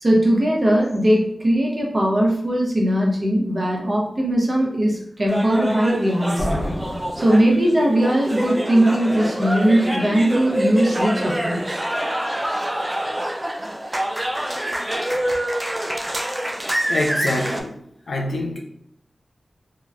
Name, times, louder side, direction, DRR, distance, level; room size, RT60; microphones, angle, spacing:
voice 1, 0.0-6.6 7.2-11.8, right 1 dB, 40° right, -2 dB, 0.8 m, -19 dB
sound 1, 5.3-17.6, right 1 dB, 20° right, 0.3 m, -26 dB
sound 2, 6.4-8.2, equal, 40° left, 0.7 m, -29 dB
voice 2, 16.9-17.8 18.1-18.6, left 2 dB, 85° left, 1 dB, 0.4 m, -25 dB
2.9 x 2.1 x 2.4 m, 0.72 s
cardioid pair, 50°, 0 cm